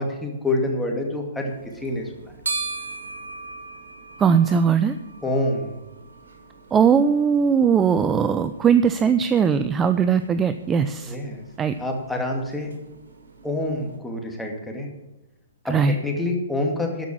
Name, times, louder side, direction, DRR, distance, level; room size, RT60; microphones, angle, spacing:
voice 1, 0.0-2.3 5.2-5.8 11.0-11.4 11.8-12.7 13.4-14.9 15.6-17.1, left 1 dB, 5° left, 0 dB, 2.4 m, -27 dB
sound 1, 1.5-14.0, right 4 dB, 85° right, 3.0 m, -39 dB
voice 2, 4.2-5.0 6.7-11.2 11.6-11.7 15.7-16.0, right 7 dB, 15° right, 11 dB, 0.5 m, -19 dB
13.5 x 6.0 x 8.7 m, 0.97 s
hypercardioid pair, 135°, 0 cm